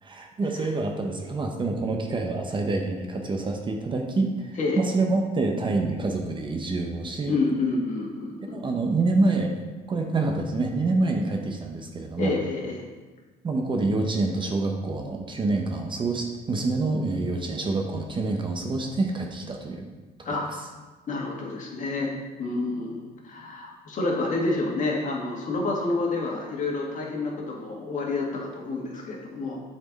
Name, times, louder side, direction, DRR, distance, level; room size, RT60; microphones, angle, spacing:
voice 1, 0.0-7.3 8.5-12.3 13.4-19.9 20.3-20.4, right 3 dB, 30° right, 3 dB, 0.8 m, -27 dB
voice 2, 7.3-8.6 12.2-12.9 20.2-20.4 21.1-29.6, left 3 dB, 50° left, -2 dB, 1.8 m, -29 dB
7.6 x 4.4 x 4.0 m, 1.3 s
cardioid pair, 110°, 17 cm